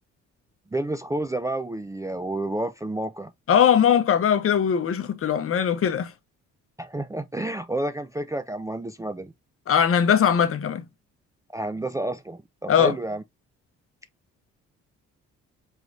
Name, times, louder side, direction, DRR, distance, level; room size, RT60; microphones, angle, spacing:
voice 1, 0.7-3.3 6.8-9.3 11.5-13.2, right 1 dB, 10° right, 0.4 m, -30 dB
voice 2, 3.5-6.1 9.7-10.8 12.7-12.9, left 8 dB, 50° left, 0.8 m, -20 dB
4.7 x 3.1 x 2.5 m
cardioid pair, 90°, 30 cm